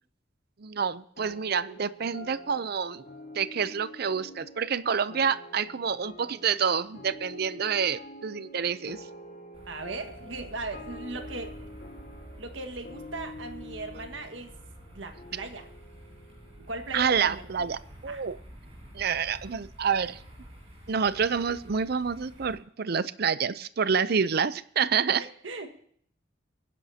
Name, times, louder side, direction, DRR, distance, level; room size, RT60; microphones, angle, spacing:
voice 1, 0.6-3.0 3.4-9.0 16.9-18.4 18.9-20.2 20.9-25.2, right 6 dB, 55° right, 15 dB, 0.6 m, -28 dB
sound 1, 1.2-18.0, left 1 dB, 45° left, 1.5 m, -47 dB
sound 2, 9.5-22.5, equal, 35° right, 7.2 m, -49 dB
voice 2, 9.7-11.7 12.4-14.5 14.9-15.7 16.7-17.7 18.1-18.2 25.2-25.7, right 2 dB, 80° right, 6 dB, 1.7 m, -38 dB
25.0 x 10.5 x 2.8 m, 0.63 s
head